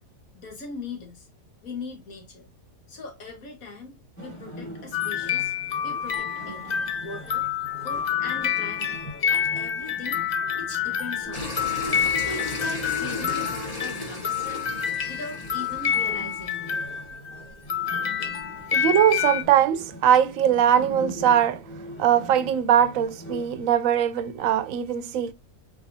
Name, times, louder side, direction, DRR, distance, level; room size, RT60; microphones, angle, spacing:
voice 1, 0.3-1.3 1.6-2.5 2.9-5.5 5.8-6.7 7.0-7.5 7.8-9.0 9.3-10.3 10.6-11.6 12.2-14.7 15.1-16.7, left 3 dB, 75° left, 1.8 m, -40 dB
sound 1, 4.2-23.7, equal, 10° left, 1.5 m, -42 dB
sound 2, 4.9-17.4 17.7-19.4, left 8 dB, 60° left, 0.4 m, -28 dB
sound 3, 11.3-16.7, left 2 dB, 30° left, 1.1 m, -35 dB
voice 2, 18.7-21.6 22.0-25.3, right 9 dB, 75° right, 0.9 m, -21 dB
4.9 x 3.5 x 2.7 m
omnidirectional pair, 1.5 m